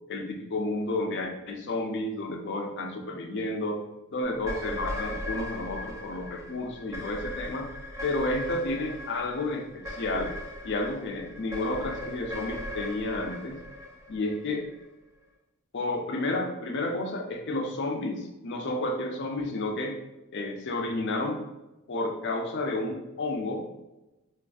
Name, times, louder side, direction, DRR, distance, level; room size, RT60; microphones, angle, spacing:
voice 1, 0.1-3.8 4.1-7.7 8.0-10.3 10.6-13.6 14.1-14.7 15.7-20.0 20.3-21.4 21.9-23.8, left 2 dB, 50° left, 3 dB, 0.5 m, -31 dB
sound 1, 4.4-14.8, left 1 dB, 15° right, 0.5 m, -39 dB
4.0 x 2.5 x 2.3 m, 0.99 s
head